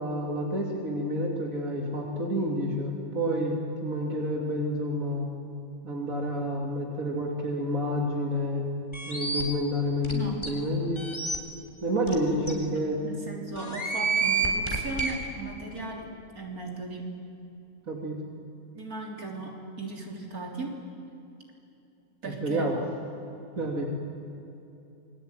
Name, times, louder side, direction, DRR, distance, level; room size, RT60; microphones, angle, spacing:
voice 1, 0.0-5.3 5.8-8.7 9.1-11.0 11.8-13.0 17.9-18.2 22.2-22.8 23.6-23.9, equal, 65° right, 0 dB, 3.4 m, -29 dB
sound 1, 8.9-9.4 10.0-10.1 10.4-10.5 11.0-11.4 12.1-12.2 12.5-12.6 13.6-15.1, right 4 dB, 20° left, 3.7 m, -28 dB
voice 2, 10.1-10.5 12.0-12.4 13.0-17.1 18.7-20.8 22.2-22.7, right 3 dB, 85° right, 1 dB, 4.1 m, -37 dB
28.0 x 22.5 x 9.3 m, 2.8 s
omnidirectional pair, 1.5 m